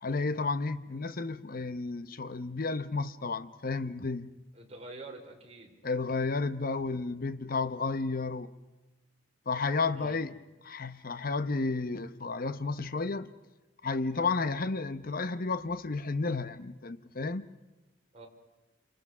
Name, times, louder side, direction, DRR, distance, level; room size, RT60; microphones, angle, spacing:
voice 1, 0.0-4.3 5.8-8.5 9.5-10.3 10.6-13.3 13.8-17.5, left 3 dB, 50° left, 0.8 m, -32 dB
voice 2, 4.5-5.7 9.9-10.2 18.1-18.3, right 2 dB, 35° right, 3.7 m, -46 dB
27.5 x 25.5 x 6.1 m
head